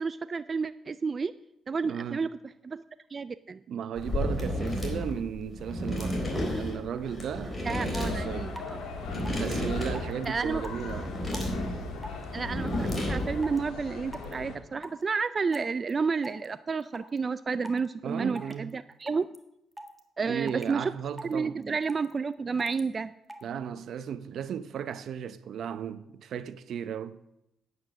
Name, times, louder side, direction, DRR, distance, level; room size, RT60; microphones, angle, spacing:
voice 1, 0.0-1.3 1.7-2.8 3.1-3.6 7.6-8.8 10.3-10.6 12.3-19.3 20.2-20.9 21.2-23.1, right 5 dB, 35° right, 0.4 m, -31 dB
voice 2, 1.8-2.3 3.7-6.2 6.5-8.5 9.3-11.2 18.0-18.7 20.3-21.6 23.4-27.2, right 8 dB, 65° right, 0.7 m, -35 dB
sound 1, 4.0-13.6, left 1 dB, 25° left, 3.8 m, -32 dB
sound 2, 8.0-14.5, left 5 dB, 80° left, 3.1 m, -40 dB
Drips rapid, 8.6-8.7 9.2-9.5 9.9-10.3 10.6-10.9 11.3-11.5 12.0-12.2 12.7-13.0 13.4-13.6 14.1-14.3 14.8-15.0 15.5-15.9 16.2-16.5 16.8-17.2 17.6-17.9 18.4-18.7 19.0-19.4 19.7-20.0 20.5-20.7 21.2-21.3 21.6-22.1 22.6-22.8 23.3-23.4, right 1 dB, 10° right, 1.6 m, -42 dB
9.5 x 8.6 x 6.5 m
cardioid pair, 85°, 0 cm